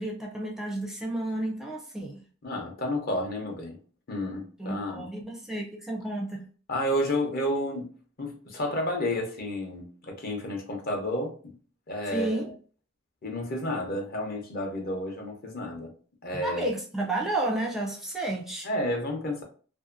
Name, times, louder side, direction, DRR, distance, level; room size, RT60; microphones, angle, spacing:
voice 1, 0.0-2.2 4.6-6.5 12.1-12.5 16.3-18.7, right 2 dB, ahead, 0.4 m, -31 dB
voice 2, 2.4-3.8 4.1-5.1 6.7-7.8 8.2-11.5 11.9-12.4 13.2-15.9 16.2-16.7 18.6-19.4, left 1 dB, 50° left, 0.8 m, -31 dB
2.7 x 2.6 x 2.5 m
head